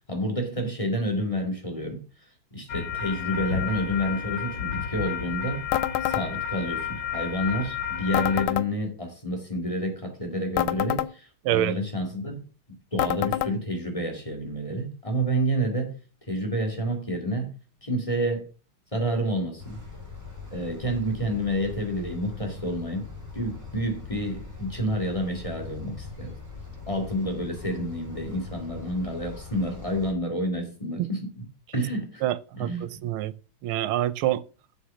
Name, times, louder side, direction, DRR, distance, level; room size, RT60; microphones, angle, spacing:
voice 1, 0.1-2.0 2.5-5.7 6.0-12.4 12.9-16.0 16.3-17.5 17.8-18.5 18.9-19.9 20.5-23.1 23.3-26.3 26.9-31.4 31.7-32.2 32.5-32.8, equal, 15° left, 2.2 m, -29 dB
sound 1, 2.7-8.5, left 8 dB, 65° left, 2.1 m, -31 dB
sound 2, 5.7-6.3 8.1-8.7 10.6-11.1 13.0-13.5, left 13 dB, 85° left, 1.5 m, -26 dB
sound 3, 19.6-30.1, left 4 dB, 10° right, 3.3 m, -41 dB
voice 2, 32.2-33.3 33.6-34.4, right 13 dB, 80° right, 1.5 m, -26 dB
7.2 x 7.2 x 6.2 m
omnidirectional pair, 2.3 m